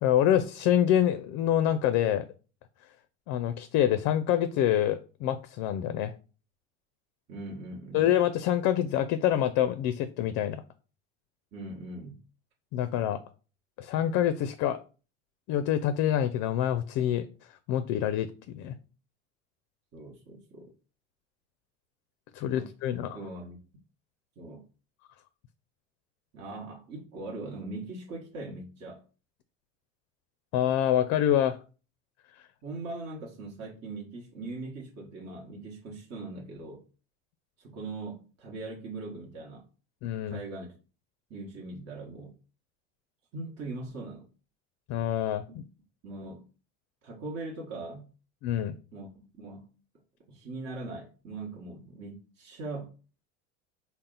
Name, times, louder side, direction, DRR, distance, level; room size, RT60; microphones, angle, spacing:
voice 1, 0.0-2.3 3.3-6.1 7.9-10.6 12.7-13.2 13.8-14.8 15.5-17.3 17.7-18.7 22.3-23.2 30.5-31.6 40.0-40.4 44.9-45.6 48.4-48.7, left 11 dB, 50° left, 12 dB, 0.4 m, -26 dB
voice 2, 7.3-8.1 11.5-12.2 19.9-20.7 22.5-22.7 22.9-23.6 24.4-24.6 26.3-29.0 32.6-36.8 37.6-39.6 40.2-40.7 41.3-42.3 43.3-44.3 46.0-46.4 47.0-48.1 48.9-49.7 50.3-52.9, right 2 dB, 45° right, -1 dB, 1.1 m, -40 dB
4.0 x 2.1 x 3.7 m, 0.35 s
hypercardioid pair, 80°, 37 cm